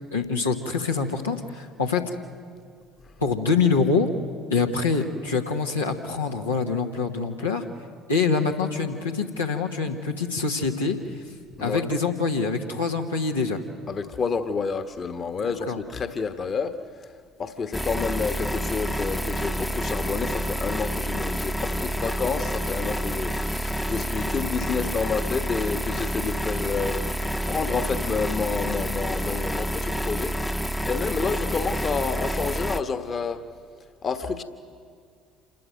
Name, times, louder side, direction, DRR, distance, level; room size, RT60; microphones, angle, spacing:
voice 1, 0.1-2.1 3.2-4.1 4.5-7.6 8.1-11.2 11.6-13.6 15.4-15.8, left 4 dB, 90° left, -1 dB, 1.3 m, -25 dB
voice 2, 13.9-16.8 17.4-30.3 30.8-33.4 34.0-34.4, left 5 dB, 40° left, 9 dB, 1.3 m, -29 dB
sound 1, 17.7-32.8, equal, 10° left, 0.9 m, -28 dB
27.5 x 13.5 x 9.0 m, 2.3 s
figure-of-eight pair, 55°, 0 cm